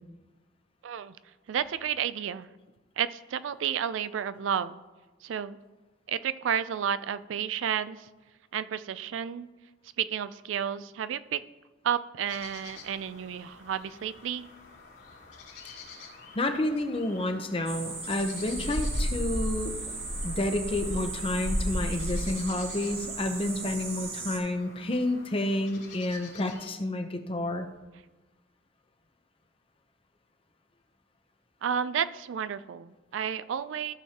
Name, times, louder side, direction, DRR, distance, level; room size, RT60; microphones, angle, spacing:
voice 1, 0.8-1.2 1.5-2.5 3.0-4.8 5.2-5.6 6.1-8.1 8.5-9.5 10.0-11.4 11.8-14.5 31.6-33.9, right 8 dB, 90° right, 14 dB, 0.4 m, -31 dB
sound 1, 12.2-26.7, left 4 dB, 70° left, 2.9 m, -49 dB
voice 2, 16.4-19.7 20.2-27.7, left 1 dB, 30° left, 6 dB, 0.7 m, -30 dB
sound 2, 17.6-24.4, right 1 dB, 55° right, 2.2 m, -33 dB
15.0 x 6.3 x 2.9 m, 1.2 s
head